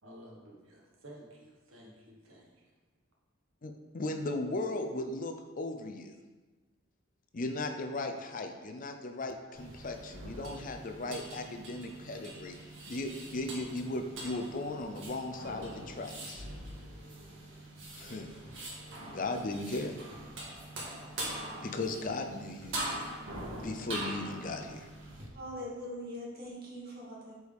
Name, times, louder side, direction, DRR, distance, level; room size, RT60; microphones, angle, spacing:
voice 1, 0.0-2.7, right 1 dB, 85° right, -2 dB, 1.6 m, -53 dB
voice 2, 3.6-6.1 7.3-12.6 12.9-16.5 17.9-18.3 19.0-20.0 21.6-22.8 23.6-24.9, left 2 dB, 40° left, 6 dB, 0.5 m, -37 dB
sound 1, 9.5-25.2, right 1 dB, 65° right, 1.8 m, -43 dB
voice 3, 25.3-27.3, equal, 50° right, -5 dB, 2.1 m, -42 dB
8.4 x 4.8 x 3.5 m, 1.2 s
head